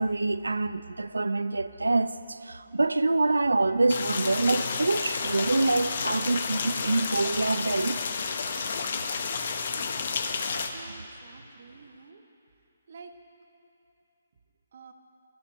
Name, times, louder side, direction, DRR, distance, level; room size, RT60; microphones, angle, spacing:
voice 1, 0.0-8.0 9.7-9.9 10.5-11.0, right 2 dB, 80° right, 0.4 m, -26 dB
sound 1, 3.9-10.7, left 5 dB, 50° left, 0.8 m, -31 dB
voice 2, 10.7-12.2 12.9-13.1 14.7-14.9, right 5 dB, 55° right, 1.0 m, -49 dB
12.5 x 6.3 x 9.3 m
figure-of-eight pair, 140°, 0 cm